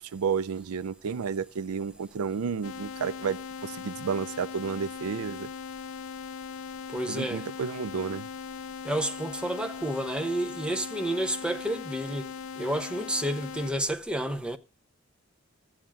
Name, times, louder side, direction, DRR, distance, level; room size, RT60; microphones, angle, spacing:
voice 1, 0.0-5.5 7.1-8.3, right 6 dB, 90° right, 0.4 m, -31 dB
sound 1, 2.6-13.7, left 6 dB, 70° left, 0.5 m, -39 dB
voice 2, 6.9-7.5 8.8-12.3 12.6-14.6, right 1 dB, 5° right, 0.5 m, -30 dB
14.5 x 8.8 x 2.3 m
head